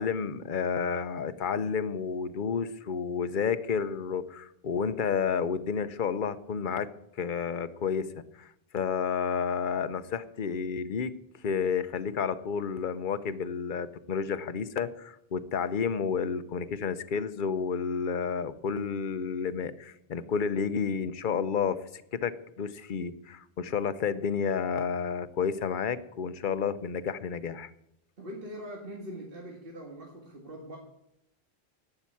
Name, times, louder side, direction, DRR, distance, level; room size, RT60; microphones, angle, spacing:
voice 1, 0.0-6.9 7.2-8.1 8.4-11.1 11.4-27.7, left 6 dB, 50° left, 12 dB, 0.9 m, -31 dB
voice 2, 28.2-30.8, equal, 60° right, 0 dB, 2.0 m, -42 dB
12.0 x 8.8 x 8.4 m, 0.80 s
omnidirectional pair, 1.1 m